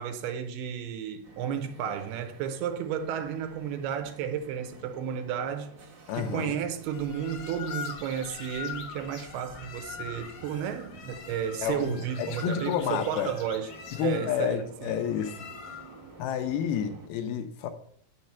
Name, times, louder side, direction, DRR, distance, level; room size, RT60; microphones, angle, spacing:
voice 1, 0.0-5.8 6.1-13.7 14.0-15.0, right 8 dB, 75° right, 2.7 m, -33 dB
sound 1, 1.2-17.1, right 2 dB, 40° right, 1.3 m, -51 dB
voice 2, 6.1-6.6 11.6-13.4 14.0-15.5 16.2-17.7, left 8 dB, 80° left, 2.4 m, -30 dB
sound 2, 6.9-16.1, left 6 dB, 60° left, 1.7 m, -43 dB
9.0 x 6.6 x 5.7 m
omnidirectional pair, 4.8 m